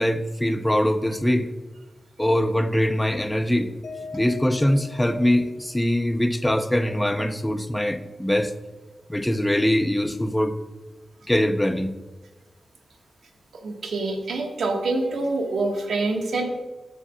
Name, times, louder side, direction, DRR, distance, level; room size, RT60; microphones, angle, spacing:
voice 1, 0.0-1.5 2.2-3.7 4.1-8.5 9.1-10.5 11.3-12.0, left 1 dB, 5° left, 9 dB, 0.4 m, -22 dB
Mallet percussion, 3.8-6.1, left 4 dB, 65° left, 0.9 m, -41 dB
voice 2, 13.5-16.4, right 2 dB, 70° right, 2 dB, 1.2 m, -26 dB
6.7 x 4.9 x 5.5 m, 1.2 s
wide cardioid pair, 170°, 0 cm